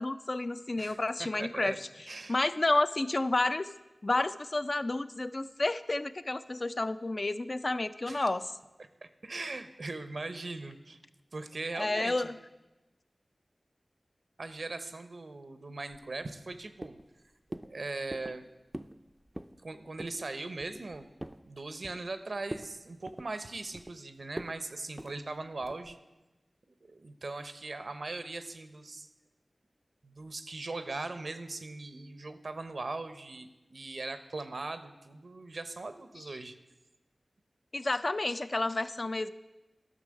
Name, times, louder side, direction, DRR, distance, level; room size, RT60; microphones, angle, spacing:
voice 1, 0.0-1.7 2.3-3.7 4.0-8.5 11.8-12.4 37.7-39.3, left 2 dB, 45° left, 11 dB, 0.4 m, -30 dB
voice 2, 0.8-1.8 2.1-2.4 8.1-8.2 9.0-11.0 11.3-12.3 14.4-17.0 17.6-18.4 19.6-21.1 21.4-26.0 26.8-29.1 30.0-36.6, right 3 dB, 70° right, 10 dB, 0.7 m, -40 dB
sound 1, 15.9-16.5 16.8-17.2 17.5-17.7 18.1-18.4 18.7-19.0 19.3-19.6 20.0-20.2 20.6-21.4 21.8-22.2 22.5-22.7 23.1-24.0 24.4-24.6 25.0-25.2 25.6-25.9, right 1 dB, 15° right, 0.4 m, -43 dB
12.0 x 6.3 x 6.3 m, 1.1 s
wide cardioid pair, 65°, 0 cm